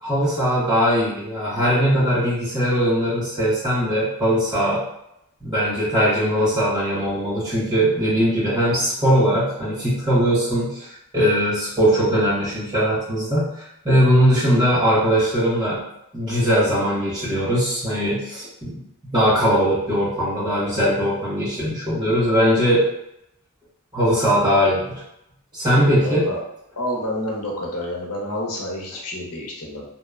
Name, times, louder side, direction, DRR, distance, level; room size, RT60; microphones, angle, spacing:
voice 1, 0.0-4.8 5.4-15.8 16.1-18.8 19.1-22.9 23.9-25.0 25.5-26.3, equal, 20° right, -9 dB, 1.2 m, -20 dB
voice 2, 26.0-26.4 26.8-29.8, left 1 dB, 85° left, -1 dB, 0.7 m, -29 dB
2.8 x 2.1 x 2.3 m, 0.81 s
head